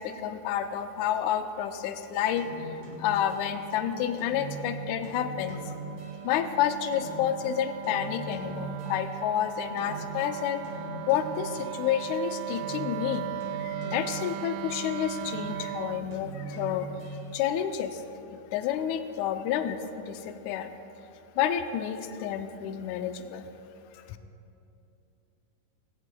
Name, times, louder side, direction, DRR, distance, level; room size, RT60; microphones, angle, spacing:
voice 1, 0.0-5.7 6.2-10.6 11.1-13.3 13.6-16.9 17.3-18.0 18.5-20.7 21.4-23.5 24.1-24.2, left 9 dB, 90° left, 8 dB, 1.7 m, -30 dB
sound 1, 2.4-9.5 9.8-12.1 12.5-14.8 15.2-17.3, right 3 dB, 55° right, 3.7 m, -41 dB
Wind instrument woodwind instrument, 3.2-16.1, right 11 dB, 85° right, 2.2 m, -39 dB
20.5 x 17.0 x 2.2 m, 2.9 s
omnidirectional pair, 3.9 m